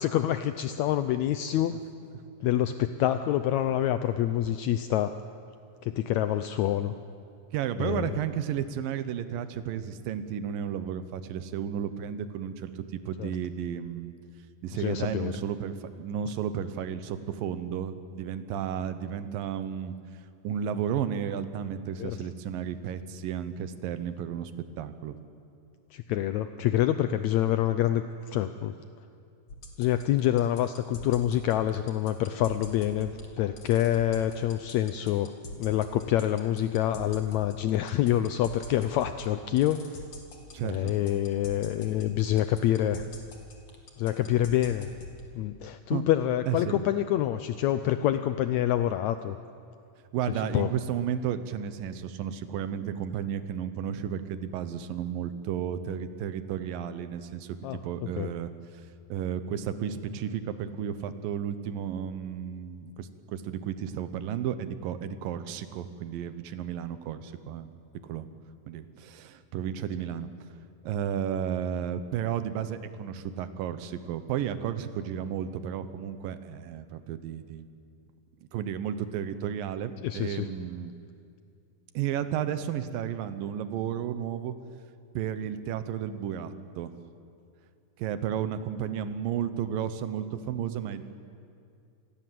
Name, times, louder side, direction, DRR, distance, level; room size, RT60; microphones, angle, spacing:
voice 1, 0.0-1.8 2.4-5.2 5.8-6.9 7.8-8.1 13.2-13.3 14.7-15.3 22.0-22.2 25.9-28.0 28.3-28.7 29.8-33.1 33.4-35.3 35.6-40.0 40.6-43.1 44.0-44.9 45.3-49.4 50.5-50.7 57.6-57.8 58.2-58.3 80.0-80.5, left 12 dB, 85° left, 10 dB, 1.6 m, -26 dB
voice 2, 7.5-14.1 14.6-20.0 20.4-25.2 40.5-40.9 45.9-46.1 46.5-46.8 50.1-57.6 57.8-58.5 59.1-67.7 68.0-68.3 68.7-70.3 70.8-77.6 78.5-80.9 81.9-84.5 85.1-86.9 88.0-91.0, right 9 dB, 80° right, 11 dB, 2.8 m, -33 dB
sound 1, 29.5-45.2, left 1 dB, 50° left, 3.4 m, -43 dB
27.0 x 20.5 x 7.7 m, 2.5 s
omnidirectional pair, 4.0 m